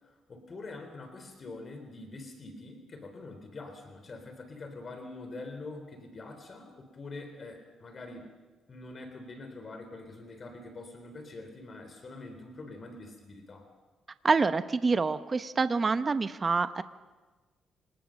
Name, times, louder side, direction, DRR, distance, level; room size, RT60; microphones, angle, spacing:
voice 1, 0.0-8.3 8.7-13.7, left 2 dB, 40° left, 6 dB, 3.8 m, -45 dB
voice 2, 14.2-16.8, right 4 dB, 35° right, 11 dB, 0.9 m, -26 dB
25.5 x 19.5 x 6.5 m, 1.3 s
cardioid pair, 90°, 0 cm